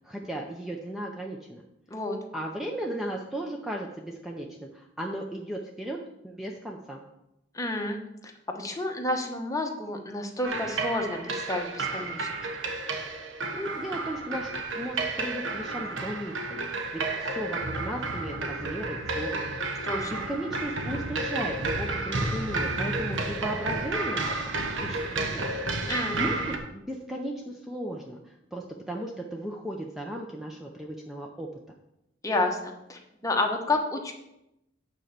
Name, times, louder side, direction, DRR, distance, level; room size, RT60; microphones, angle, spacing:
voice 1, 0.0-1.6 2.3-7.0 13.5-19.5 19.7-24.5 24.8-25.5 26.1-31.5, right 1 dB, ahead, 0 dB, 0.6 m, -36 dB
voice 2, 7.5-12.3 19.8-20.2 25.9-26.2 32.2-34.1, left 2 dB, 20° left, 3 dB, 1.0 m, -30 dB
sound 1, 10.4-26.6, right 3 dB, 75° right, 1.1 m, -31 dB
9.0 x 4.4 x 6.7 m, 0.87 s
head